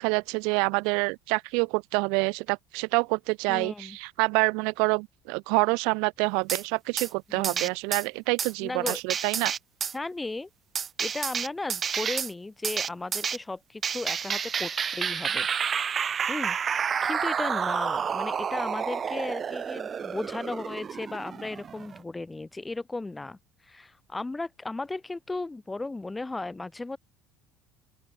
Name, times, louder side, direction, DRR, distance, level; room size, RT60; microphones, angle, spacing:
voice 1, 0.0-9.5, right 33 dB, 80° right, 0.9 m, -27 dB
voice 2, 3.5-4.0 7.3-7.7 8.6-9.0 9.9-10.5 11.0-15.5 16.3-23.4 23.6-27.0, left 2 dB, 10° left, 4.2 m, -35 dB
sound 1, 6.5-6.6 7.0-7.1 7.4-8.1 8.4-8.5 8.9-9.9 10.8-12.3 12.6-13.4 13.8-22.0, right 7 dB, 30° right, 2.2 m, -30 dB
open air
cardioid pair, 140°, 0 cm